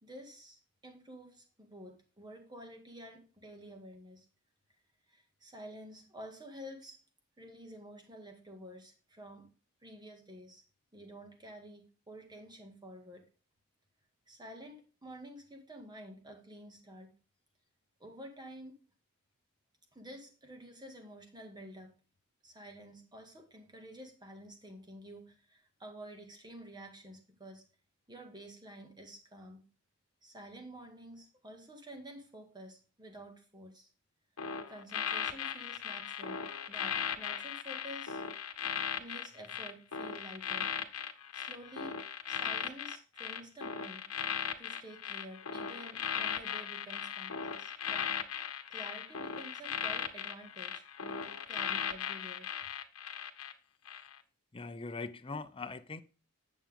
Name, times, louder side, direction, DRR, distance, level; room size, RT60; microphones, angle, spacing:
voice 1, 0.0-4.3 5.1-7.0 7.4-9.5 9.8-10.6 10.9-13.2 14.3-17.1 18.0-18.8 19.9-21.9 22.4-27.6 28.1-29.6 30.2-33.9 34.7-38.2 39.0-40.7 41.3-44.1 44.6-48.2 48.7-52.5, equal, 20° right, 4 dB, 1.9 m, -50 dB
sound 1, 34.4-53.5 53.9-54.1, left 7 dB, 75° left, 1.1 m, -37 dB
voice 2, 54.5-56.0, left 3 dB, 25° left, 10 dB, 0.6 m, -41 dB
9.3 x 7.3 x 3.6 m, 0.35 s
head